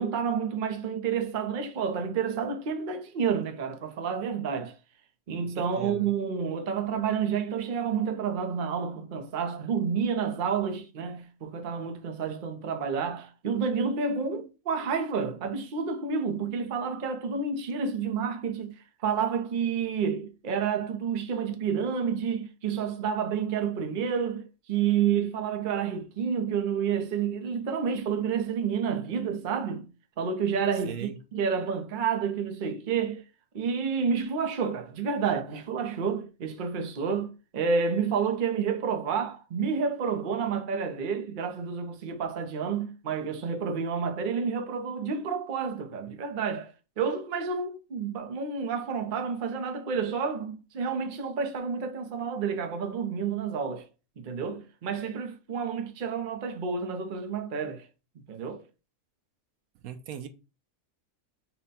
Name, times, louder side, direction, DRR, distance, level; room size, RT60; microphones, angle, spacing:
voice 1, 0.0-4.8 5.3-29.9 30.2-33.2 33.5-53.9 54.2-57.9 58.3-58.6, right 6 dB, 45° right, 0.7 m, -30 dB
voice 2, 5.4-6.1 30.9-31.2 59.8-60.3, right 9 dB, 80° right, 1.1 m, -39 dB
5.8 x 2.2 x 4.1 m
omnidirectional pair, 1.5 m